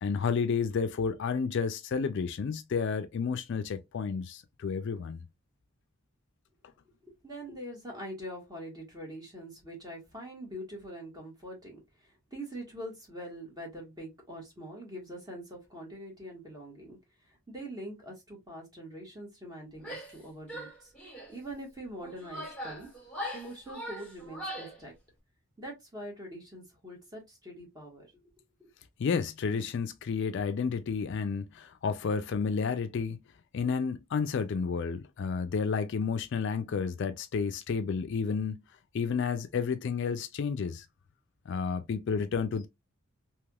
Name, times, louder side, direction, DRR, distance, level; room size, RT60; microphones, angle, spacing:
voice 1, 0.0-5.2 29.0-33.2 33.5-38.6 38.9-40.9 41.5-42.7, left 5 dB, 55° left, 0.3 m, -31 dB
voice 2, 7.0-22.9 23.3-24.9 25.6-28.3 28.6-28.7, right 1 dB, 20° right, 1.3 m, -44 dB
Female speech woman speaking / Yell, 19.8-20.2 20.5-21.3 22.0-24.8, equal, 5° left, 1.5 m, -41 dB
3.3 x 2.9 x 2.3 m
head